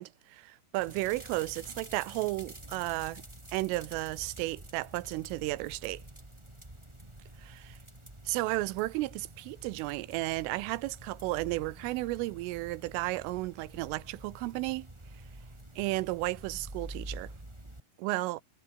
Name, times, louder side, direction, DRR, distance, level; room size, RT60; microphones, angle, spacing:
voice 1, 0.0-3.2 3.5-6.0 7.4-7.8 8.3-14.9 15.8-17.3 18.0-18.4, right 20 dB, 80° right, 3.3 m, -33 dB
sound 1, 0.8-17.8, right 1 dB, 10° right, 1.8 m, -48 dB
omnidirectional pair, 5.9 m